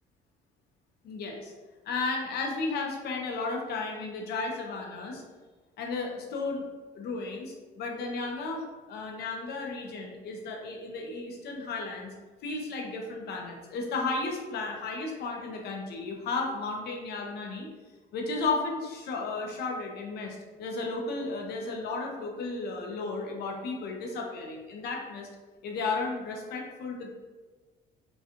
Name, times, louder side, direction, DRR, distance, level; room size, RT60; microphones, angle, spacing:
voice 1, 1.0-1.5 1.8-5.2 5.8-6.7 6.9-12.1 12.4-17.7 18.1-25.3 25.6-27.1, left 3 dB, 70° left, 1 dB, 0.9 m, -34 dB
5.5 x 2.4 x 2.9 m, 1.3 s
cardioid pair, 110°, 17 cm